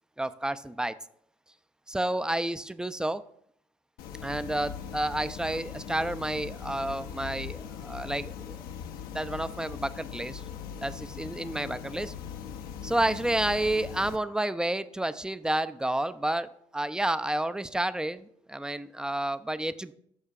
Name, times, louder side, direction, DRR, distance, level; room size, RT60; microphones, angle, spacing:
voice 1, 0.2-0.9 1.9-3.2 4.2-8.6 9.1-10.4 10.8-12.1 12.8-19.9, right 1 dB, 5° right, 14 dB, 0.4 m, -30 dB
sound 1, 4.0-14.2, left 8 dB, 65° left, 0.6 m, -40 dB
11.5 x 6.3 x 2.4 m, 0.68 s
hypercardioid pair, 50°, 17 cm